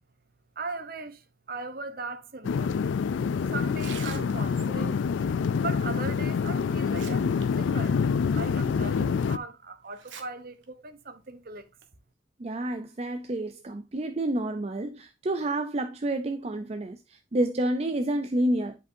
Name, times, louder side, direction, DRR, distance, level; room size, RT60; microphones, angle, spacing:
voice 1, 0.6-2.8 3.5-5.1 5.6-11.7, right 3 dB, 50° right, 0.9 m, -39 dB
sound 1, 2.4-9.4, left 6 dB, 80° left, 0.4 m, -26 dB
Tearing, 3.7-4.7 6.1-6.2 6.7-7.4 7.8-7.9 8.6-8.7 9.9-10.2 10.6-10.7 11.6-11.8, right 6 dB, 85° right, 1.3 m, -44 dB
voice 2, 12.4-18.8, right 1 dB, 35° right, 0.5 m, -29 dB
10.0 x 5.3 x 2.7 m
head